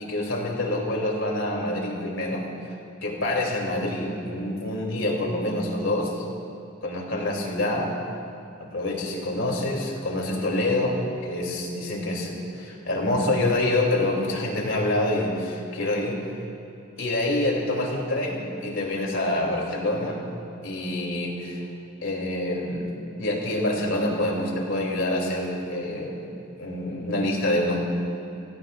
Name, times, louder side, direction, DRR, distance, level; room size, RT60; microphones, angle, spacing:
voice 1, 0.0-2.4 3.0-6.3 6.8-7.9 8.6-16.2 17.0-20.2 20.6-21.6 22.0-22.9 23.2-27.8, left 1 dB, 70° left, -1 dB, 3.1 m, -26 dB
28.5 x 17.0 x 2.6 m, 2.8 s
head